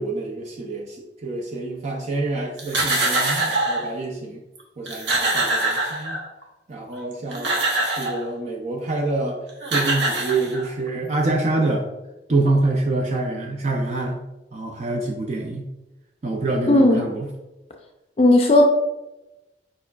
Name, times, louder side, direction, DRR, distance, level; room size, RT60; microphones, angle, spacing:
voice 1, 0.0-4.4 4.8-6.2 6.7-7.5 7.9-9.4 9.7-11.9 12.3-14.3 14.5-15.7 16.2-17.3, right 2 dB, 40° right, 1 dB, 0.4 m, -26 dB
sound 1, 2.6-3.9 4.6-4.7 4.9-6.4 7.1-8.2 9.3-9.4 9.6-10.9, right 2 dB, 85° right, 1.0 m, -23 dB
voice 2, 16.7-17.0 18.2-18.6, left 1 dB, 35° left, 2 dB, 0.4 m, -14 dB
4.9 x 4.7 x 2.2 m, 1.0 s
head